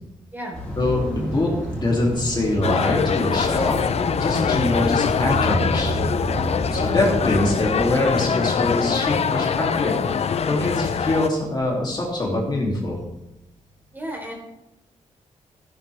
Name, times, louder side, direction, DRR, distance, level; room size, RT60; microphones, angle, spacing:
sound 1, 0.5-7.9, right 1 dB, 10° left, 4.9 m, -30 dB
voice 1, 0.7-3.8 4.2-5.9 6.7-13.0, left 2 dB, 35° left, -2 dB, 2.9 m, -24 dB
sound 2, 2.6-11.3, left 6 dB, 55° left, 0.6 m, -23 dB
voice 2, 13.9-14.3, right 1 dB, 15° right, -2 dB, 4.0 m, -32 dB
14.0 x 11.5 x 3.5 m, 0.92 s
wide cardioid pair, 125°, 13 cm